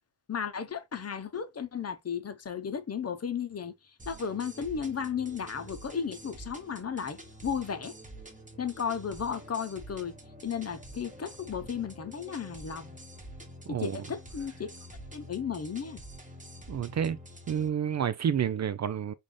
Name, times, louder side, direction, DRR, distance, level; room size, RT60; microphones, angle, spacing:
voice 1, 0.3-3.7 4.1-7.9 8.6-10.2 10.4-13.0 13.7-14.7 15.1-16.0, left 7 dB, 40° left, 0.8 m, -34 dB
sound 1, 4.0-17.7, right 1 dB, 20° right, 1.2 m, -47 dB
voice 2, 13.7-14.0 16.7-17.2 17.5-19.1, right 8 dB, 45° right, 0.4 m, -29 dB
3.8 x 2.6 x 3.2 m
cardioid pair, 60°, 38 cm